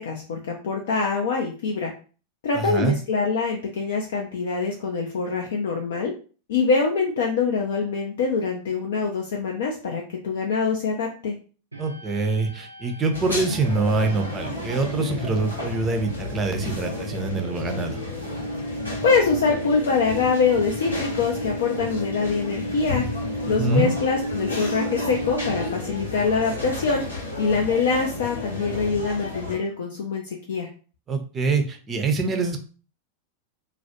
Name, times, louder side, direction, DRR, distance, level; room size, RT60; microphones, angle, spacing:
voice 1, 0.0-1.9 2.4-6.1 6.5-11.3 19.0-23.0 23.5-27.0 27.4-30.7, left 5 dB, 60° left, 0 dB, 0.4 m, -24 dB
voice 2, 2.5-3.0 11.8-18.0 23.6-23.9 31.1-32.6, right 3 dB, 20° right, 5 dB, 0.5 m, -25 dB
sound 1, 11.7-26.2, equal, 80° right, 0.3 m, -35 dB
sound 2, 13.1-29.6, left 2 dB, 85° left, 0.8 m, -33 dB
2.3 x 2.0 x 2.8 m, 0.38 s
figure-of-eight pair, 90°, 0 cm